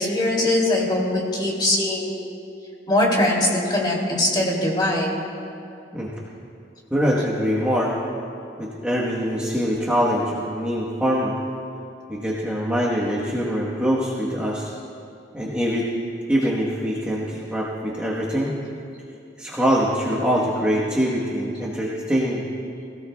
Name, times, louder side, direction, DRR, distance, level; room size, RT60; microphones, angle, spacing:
voice 1, 0.0-2.2 2.9-5.1, left 1 dB, 25° left, -3 dB, 2.8 m, -21 dB
voice 2, 6.9-7.9 8.6-11.3 12.1-14.7 15.3-15.9 16.3-18.5 19.4-22.4, equal, 5° right, -6 dB, 1.2 m, -23 dB
22.5 x 17.0 x 2.3 m, 2.6 s
head